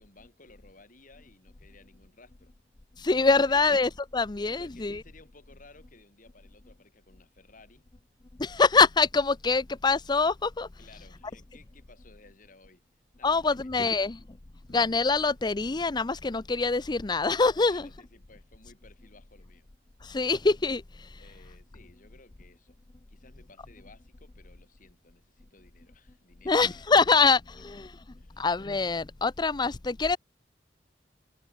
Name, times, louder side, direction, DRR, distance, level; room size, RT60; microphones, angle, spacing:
voice 1, 0.0-2.5 3.5-3.7 4.5-7.8 10.8-12.8 13.1-14.0 17.6-19.7 21.2-22.8 23.1-27.1 27.5-27.6 28.2-28.4, left 3 dB, 50° left, 4.6 m, -57 dB
voice 2, 3.0-5.0 8.4-10.7 13.2-14.2 14.7-17.9 20.0-21.2 26.5-28.0 28.4-30.2, left 4 dB, 25° left, 0.6 m, -24 dB
sound 1, 14.6-17.1, left 1 dB, 75° left, 3.8 m, -59 dB
head